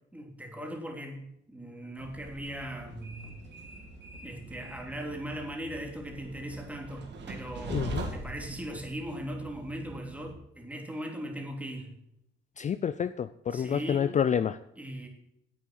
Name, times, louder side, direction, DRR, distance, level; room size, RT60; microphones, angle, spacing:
voice 1, 0.1-3.4 4.2-11.9 13.5-14.2 14.8-15.1, equal, 5° right, 1 dB, 3.1 m, -39 dB
Train, 2.0-10.3, right 3 dB, 60° right, 2.5 m, -42 dB
voice 2, 7.7-8.0 12.6-14.6, left 8 dB, 40° left, 14 dB, 0.4 m, -28 dB
10.5 x 8.4 x 7.6 m, 0.80 s
cardioid pair, 90°, 20 cm